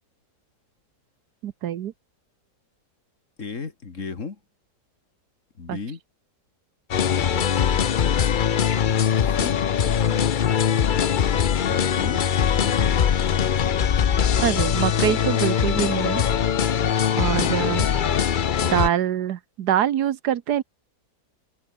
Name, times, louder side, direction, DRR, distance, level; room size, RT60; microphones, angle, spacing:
voice 1, 1.4-1.9 5.7-5.8 14.4-16.2 17.2-17.9 18.6-20.6, right 10 dB, 70° right, 1.4 m, -24 dB
voice 2, 3.4-4.4 5.6-6.0 7.1-7.5 9.2-10.3 11.6-12.2 12.6-13.0 17.4-17.6, left 5 dB, 45° left, 2.3 m, -35 dB
sound 1, 6.9-18.9, left 8 dB, 70° left, 0.4 m, -21 dB
omnidirectional pair, 1.8 m